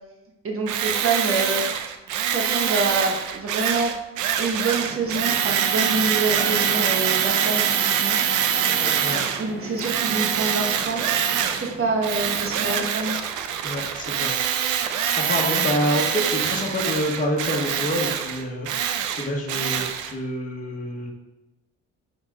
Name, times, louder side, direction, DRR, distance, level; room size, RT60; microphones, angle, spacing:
voice 1, 0.4-1.6 2.2-3.9 4.4-8.2 9.4-11.3 11.6-13.2, right 3 dB, 45° right, 1 dB, 1.2 m, -26 dB
Tools, 0.7-9.5 9.8-11.7 12.0-20.1, right 9 dB, 90° right, 0.6 m, -24 dB
sound 1, 4.8-12.8, right 2 dB, 25° right, 1.5 m, -36 dB
voice 2, 13.6-14.4 15.2-18.7 19.2-21.1, left 1 dB, 25° left, -2 dB, 1.3 m, -27 dB
6.1 x 4.0 x 4.9 m, 1.0 s
cardioid pair, 90°, 30 cm